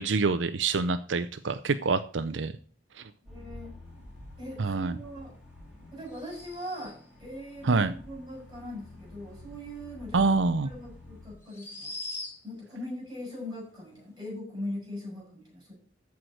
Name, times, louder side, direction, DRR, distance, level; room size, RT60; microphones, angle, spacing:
voice 1, 0.0-2.5 3.0-3.1 4.6-5.0 7.6-7.9 10.1-10.7, right 4 dB, 75° right, 11 dB, 0.6 m, -26 dB
voice 2, 3.2-3.7 4.4-5.3 5.9-10.3 10.6-11.9 12.4-15.7, left 1 dB, 20° right, 0 dB, 6.9 m, -40 dB
sound 1, 3.3-11.3, left 2 dB, ahead, 4.2 m, -49 dB
sound 2, 6.1-7.2 10.2-10.3 11.4-12.7, left 2 dB, 15° left, 3.1 m, -41 dB
14.0 x 4.7 x 6.3 m, 0.43 s
head